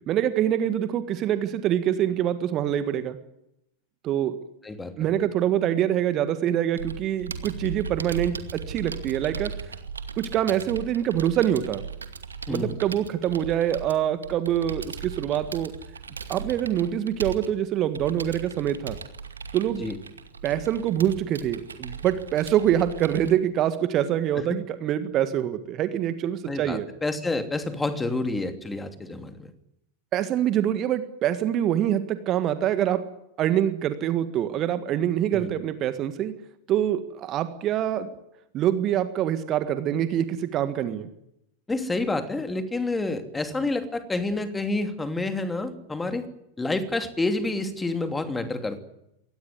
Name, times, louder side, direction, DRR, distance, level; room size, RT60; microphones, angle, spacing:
voice 1, 0.1-3.2 4.0-4.3 5.0-9.5 10.2-11.8 12.5-15.7 16.3-19.0 19.5-19.9 20.4-26.9 30.1-33.0 33.4-36.3 36.7-38.1 38.5-41.1, right 11 dB, 35° right, 11 dB, 1.7 m, -25 dB
Computer keyboard, 6.8-23.3, right 5 dB, 75° right, 2.3 m, -38 dB
voice 2, 12.5-12.8 19.8-20.0 24.4-24.5 26.5-29.4 35.3-35.5 41.7-46.3 46.6-48.8, left 2 dB, 10° left, 8 dB, 2.8 m, -28 dB
23.0 x 19.0 x 9.6 m, 0.82 s
figure-of-eight pair, 90°, 0 cm